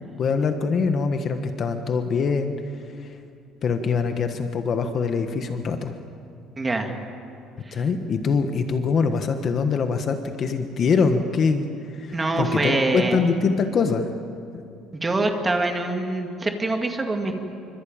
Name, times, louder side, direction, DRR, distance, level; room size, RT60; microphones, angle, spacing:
voice 1, 0.2-2.5 3.0-3.1 3.6-5.9 7.7-14.1, left 5 dB, 35° left, 6 dB, 1.4 m, -23 dB
voice 2, 6.6-6.9 7.7-7.8 12.1-13.2 14.9-17.4, right 2 dB, 15° right, 4 dB, 2.2 m, -24 dB
27.0 x 25.0 x 8.9 m, 2.5 s
cardioid pair, 170°, 0 cm